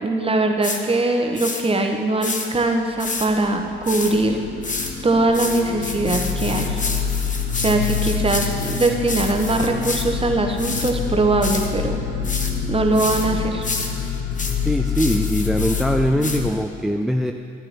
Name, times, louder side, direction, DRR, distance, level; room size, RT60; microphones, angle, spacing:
voice 1, 0.0-4.4 5.0-6.8 7.5-12.0 12.7-13.7, right 2 dB, 20° right, 4 dB, 0.9 m, -21 dB
sound 1, 0.6-0.8 1.3-1.6 2.2-2.5 3.0-3.3 3.8-4.1 4.6-4.9 5.3-10.0 10.6-10.9 11.4-11.7 12.2-12.5 12.9-13.3 13.6-15.8 16.2-16.4, left 3 dB, 25° left, 1.0 m, -29 dB
sound 2, 2.9-16.5, left 7 dB, 75° left, 0.9 m, -27 dB
voice 2, 14.6-17.3, equal, ahead, 5 dB, 0.3 m, -21 dB
12.5 x 8.8 x 2.9 m, 2.4 s
figure-of-eight pair, 45°, 30 cm